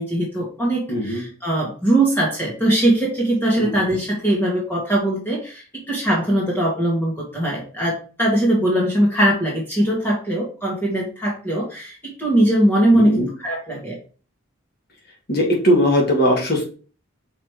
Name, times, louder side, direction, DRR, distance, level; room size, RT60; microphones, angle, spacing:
voice 1, 0.0-14.0, right 1 dB, 10° left, -4 dB, 2.0 m, -21 dB
voice 2, 0.9-1.3 3.6-3.7 12.9-13.3 15.3-16.6, equal, 50° left, 0 dB, 2.4 m, -19 dB
5.7 x 5.0 x 4.9 m, 0.39 s
head